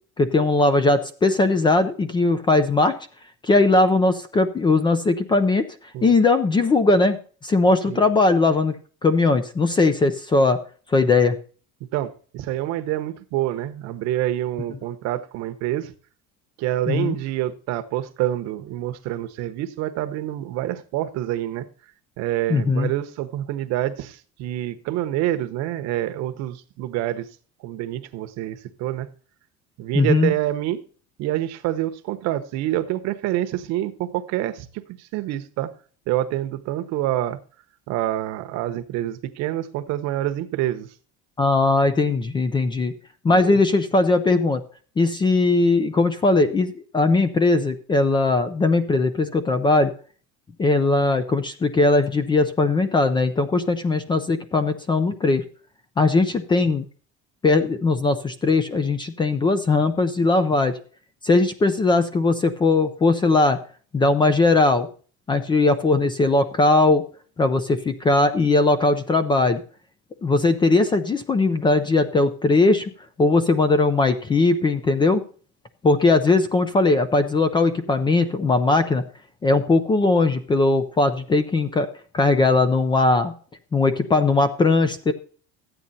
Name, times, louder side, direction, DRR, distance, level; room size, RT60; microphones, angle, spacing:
voice 1, 0.2-2.9 3.4-5.6 6.0-8.8 9.0-10.6 10.9-11.4 16.9-17.2 22.5-22.9 29.9-30.3 41.4-42.9 43.2-44.6 45.0-49.9 50.6-55.4 56.0-56.8 57.4-60.7 61.2-63.6 63.9-64.9 65.3-67.0 67.4-69.6 70.2-72.9 73.2-75.2 75.8-79.0 79.4-81.9 82.1-83.3 83.7-85.1, left 3 dB, 15° left, 11 dB, 0.5 m, -19 dB
voice 2, 11.9-15.9 16.6-21.6 22.2-27.3 27.6-29.1 29.8-30.8 31.2-35.7 36.1-37.4 37.9-40.9 43.3-43.6, right 13 dB, 55° right, 10 dB, 1.0 m, -27 dB
13.5 x 9.0 x 4.1 m, 0.41 s
cardioid pair, 175°, 31 cm